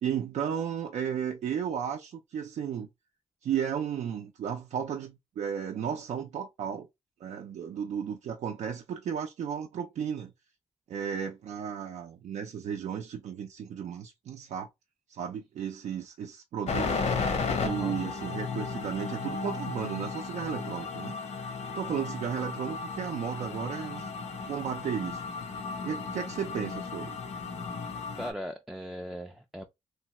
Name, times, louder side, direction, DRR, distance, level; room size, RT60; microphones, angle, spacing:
voice 1, 0.0-2.9 3.4-6.9 7.2-10.3 10.9-14.7 15.1-17.0 17.6-21.4 21.8-24.1 24.5-25.2 25.8-27.2, right 8 dB, 80° right, 0.5 m, -34 dB
sound 1, 16.7-28.3, left 4 dB, 70° left, 0.8 m, -34 dB
voice 2, 17.6-18.0 28.1-29.6, equal, 5° right, 0.3 m, -38 dB
3.2 x 2.2 x 2.9 m
cardioid pair, 110°, 12 cm